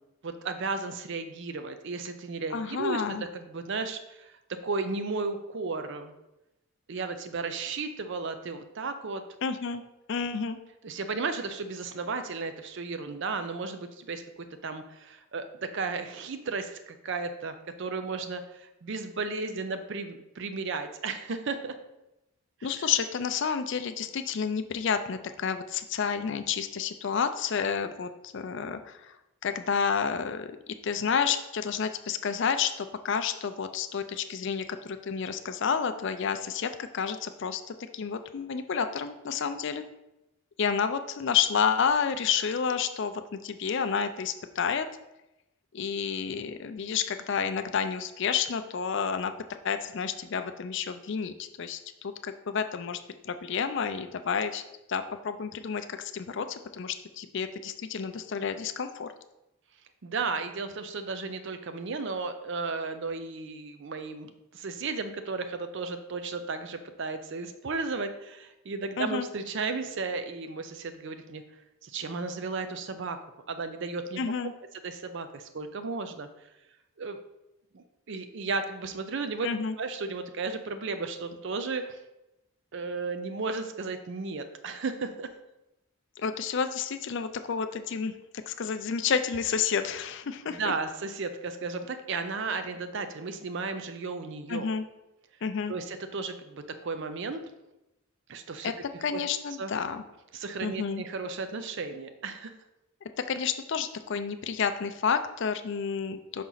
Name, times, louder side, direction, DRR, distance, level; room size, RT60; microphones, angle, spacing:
voice 1, 0.2-3.0 3.3-4.3 4.6-6.1 6.9-9.2 10.8-14.2 14.6-21.7 22.7-22.8 60.0-71.4 71.8-73.2 73.5-74.2 74.8-76.3 77.0-77.2 77.7-79.5 79.8-82.0 82.7-85.3 90.5-94.7 95.7-97.4 98.3-98.7 99.1-99.2 99.6-99.7 100.3-102.5, right 4 dB, 55° right, 9 dB, 0.5 m, -34 dB
voice 2, 2.5-3.3 9.4-9.8 10.1-10.6 22.6-29.1 29.4-30.6 30.8-39.8 40.6-44.9 45.7-49.3 49.6-54.6 54.9-59.1 69.0-69.3 74.2-74.5 79.4-79.7 86.2-88.1 88.5-90.6 94.5-94.8 95.4-95.7 98.6-98.7 99.0-100.0 100.6-101.0 103.2-106.4, left 6 dB, 55° left, 9 dB, 0.4 m, -30 dB
6.0 x 4.2 x 3.9 m, 0.94 s
head